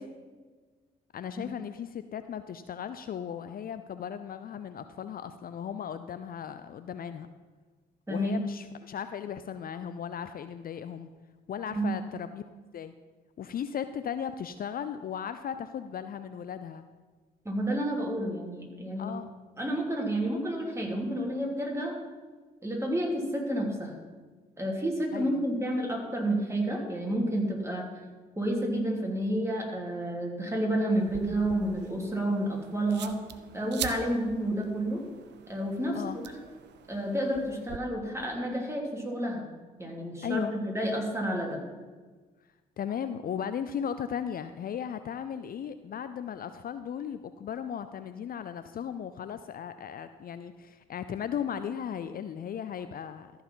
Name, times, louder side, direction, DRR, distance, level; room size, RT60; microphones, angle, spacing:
voice 1, 1.1-7.3 8.1-11.1 11.5-12.4 12.7-12.9 13.4-16.8 19.0-19.3 25.1-25.4 35.9-36.2 40.2-40.5 42.8-53.3, left 8 dB, 50° left, 11 dB, 0.5 m, -36 dB
voice 2, 8.1-8.4 11.7-12.0 17.4-19.1 19.6-22.0 22.6-23.9 24.6-27.8 28.3-33.2 33.5-35.0 35.5-36.2 36.9-39.4 39.8-41.6, right 1 dB, 15° right, -1 dB, 3.1 m, -30 dB
sound 1, 30.9-37.8, right 10 dB, 65° right, 0.7 m, -43 dB
14.0 x 4.8 x 5.6 m, 1.3 s
hypercardioid pair, 50°, 20 cm